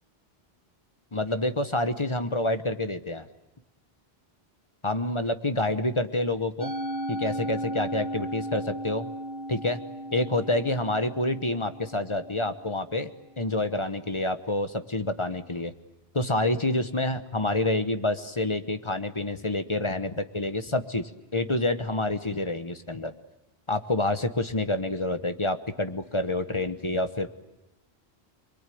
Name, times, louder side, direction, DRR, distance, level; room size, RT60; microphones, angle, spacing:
voice 1, 1.1-3.3 4.8-6.7 7.1-9.1 9.5-9.8 10.1-15.7 16.1-23.1 23.7-27.3, left 2 dB, 30° left, 10 dB, 1.1 m, -28 dB
Musical instrument, 6.6-13.0, right 1 dB, 55° left, 3.4 m, -36 dB
25.5 x 22.5 x 9.3 m, 0.94 s
omnidirectional pair, 1.1 m